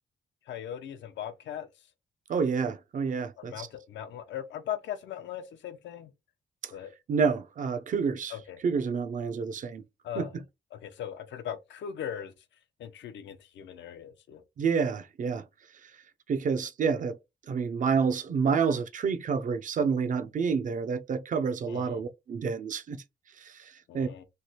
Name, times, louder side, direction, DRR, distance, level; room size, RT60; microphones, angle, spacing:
voice 1, 0.5-1.7 3.4-6.1 6.7-6.9 8.3-8.6 10.0-10.3 10.7-12.3 12.8-14.4 21.7-22.0 23.9-24.2, left 9 dB, 85° left, 0.6 m, -39 dB
voice 2, 2.3-3.7 6.6-6.7 7.1-8.4 8.6-9.8 10.2-10.3 14.6-15.4 16.3-17.2 17.5-23.0 23.4-24.1, right 5 dB, 45° right, 0.5 m, -28 dB
3.2 x 2.4 x 2.7 m
wide cardioid pair, 145°, 18 cm